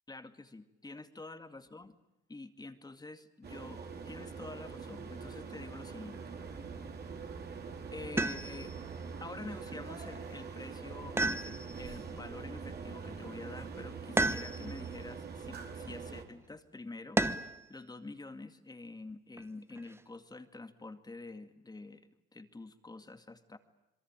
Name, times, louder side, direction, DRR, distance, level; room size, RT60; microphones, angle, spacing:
voice 1, 0.1-1.9 2.3-6.2 7.9-8.7 9.2-17.2 17.7-23.6, left 2 dB, 20° left, 8 dB, 2.2 m, -47 dB
sound 1, 3.4-16.2, right 5 dB, 55° right, 4.3 m, -44 dB
sound 2, 8.2-8.8 11.2-12.0 14.2-14.9 17.2-17.7 19.4-20.0, right 2 dB, 10° right, 1.3 m, -32 dB
27.0 x 22.5 x 9.0 m, 0.91 s
cardioid pair, 90°, 20 cm